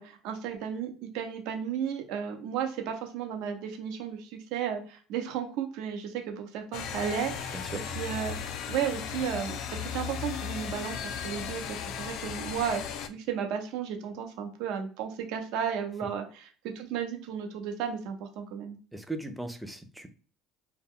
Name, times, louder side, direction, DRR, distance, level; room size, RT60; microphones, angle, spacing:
voice 1, 0.0-8.4 8.7-16.5 16.7-18.8, right 8 dB, 75° right, 0.7 m, -34 dB
sound 1, 6.7-13.1, left 7 dB, 65° left, 0.4 m, -36 dB
voice 2, 7.5-7.8 16.0-16.1 18.9-20.1, right 2 dB, 5° right, 0.5 m, -38 dB
2.2 x 2.0 x 3.6 m
supercardioid pair, 95°, 0 cm